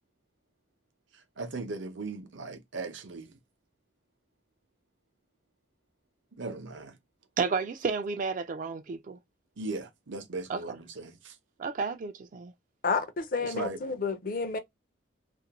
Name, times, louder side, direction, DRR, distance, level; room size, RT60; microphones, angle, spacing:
voice 1, 1.4-3.3 6.4-7.0 9.6-11.4 13.4-13.8, right 3 dB, 70° right, 0.7 m, -38 dB
voice 2, 7.4-9.2 10.5-10.8 11.6-12.5, right 5 dB, 40° right, 0.3 m, -32 dB
voice 3, 12.8-14.6, left 4 dB, 45° left, 0.5 m, -30 dB
2.5 x 2.1 x 2.8 m
head